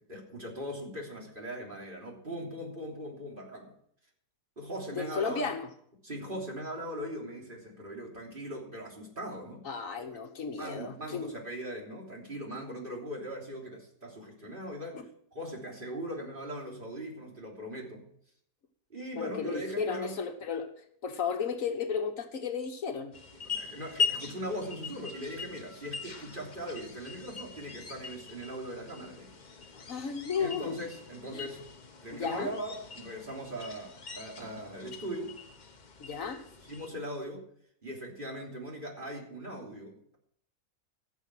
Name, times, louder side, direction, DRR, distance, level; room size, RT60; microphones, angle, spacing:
voice 1, 0.0-3.7 4.6-5.5 6.0-9.6 10.0-10.2 10.5-18.1 18.9-20.1 23.4-29.3 30.4-31.6 32.0-35.3 36.6-37.4 37.8-40.2, equal, 30° right, -1 dB, 3.4 m, -40 dB
voice 2, 4.9-5.7 9.6-11.3 14.9-15.0 19.2-20.7 21.0-23.1 29.7-30.8 31.3-31.5 32.1-32.5 36.0-36.4, left 6 dB, 60° left, 6 dB, 1.5 m, -34 dB
sound 1, 23.1-36.9, left 5 dB, 35° left, 1.0 m, -40 dB
14.5 x 7.3 x 6.1 m, 0.65 s
omnidirectional pair, 1.7 m